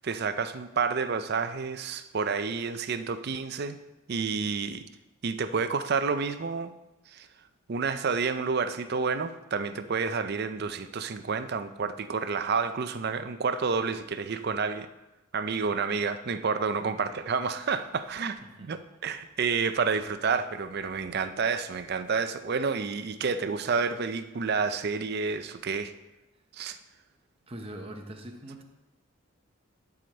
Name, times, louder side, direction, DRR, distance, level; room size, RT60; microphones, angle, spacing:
voice 1, 0.0-3.8 4.1-4.8 5.2-6.7 7.1-7.3 7.7-14.9 15.3-25.9 26.5-26.8, right 5 dB, 50° right, 11 dB, 0.5 m, -29 dB
voice 2, 18.4-18.7 27.5-28.6, right 1 dB, 25° right, 4 dB, 0.9 m, -42 dB
11.5 x 4.9 x 4.4 m, 1.0 s
head